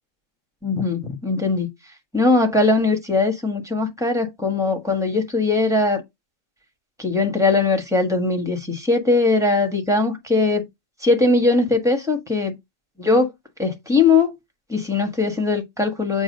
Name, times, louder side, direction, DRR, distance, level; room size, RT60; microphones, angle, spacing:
voice 1, 0.6-1.7 2.1-6.0 7.0-10.6 11.0-12.6 13.0-13.3 13.6-14.3 14.7-16.2, left 3 dB, ahead, 1.3 m, -20 dB
7.2 x 2.6 x 5.1 m
omnidirectional pair, 1.4 m